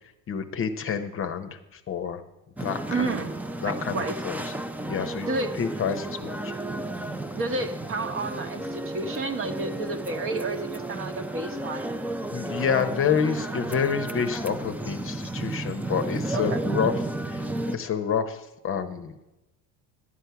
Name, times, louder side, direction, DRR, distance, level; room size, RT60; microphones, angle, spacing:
voice 1, 0.3-2.2 2.6-3.3 3.6-4.5 4.9-5.3 5.6-6.5 12.3-16.9 17.3-19.2, left 7 dB, 35° left, 8 dB, 0.8 m, -28 dB
sound 1, 2.6-17.8, right 2 dB, 5° right, 0.5 m, -33 dB
voice 2, 2.9-3.3 3.6-4.1 5.3-5.6 7.3-12.0 16.3-16.6, right 3 dB, 35° right, 7 dB, 1.1 m, -31 dB
11.5 x 8.0 x 5.8 m, 0.98 s
supercardioid pair, 115°, 37 cm